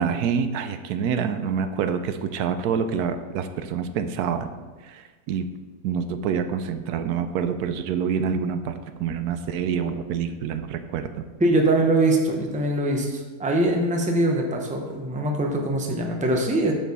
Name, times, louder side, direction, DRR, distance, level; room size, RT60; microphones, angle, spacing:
voice 1, 0.0-4.5 4.8-5.5 5.8-11.2, right 7 dB, 80° right, 10 dB, 1.1 m, -27 dB
voice 2, 11.4-16.7, right 1 dB, 5° right, 1 dB, 0.6 m, -22 dB
9.1 x 6.4 x 4.1 m, 1.3 s
omnidirectional pair, 1.7 m